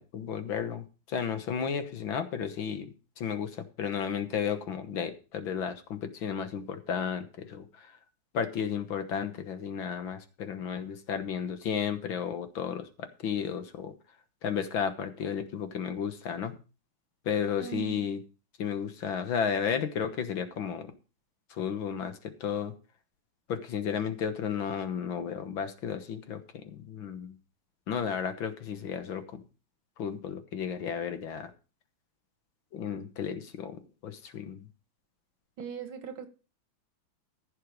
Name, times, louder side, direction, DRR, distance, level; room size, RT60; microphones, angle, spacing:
voice 1, 0.0-8.0 8.3-13.9 14.4-16.5 17.3-18.2 18.6-20.9 21.5-22.7 23.5-27.4 27.9-29.4 30.0-31.5 32.7-34.6, left 7 dB, 65° left, 2.0 m, -33 dB
voice 2, 17.6-18.1 35.6-36.3, right 9 dB, 70° right, 2.4 m, -39 dB
15.0 x 6.5 x 5.2 m
omnidirectional pair, 2.3 m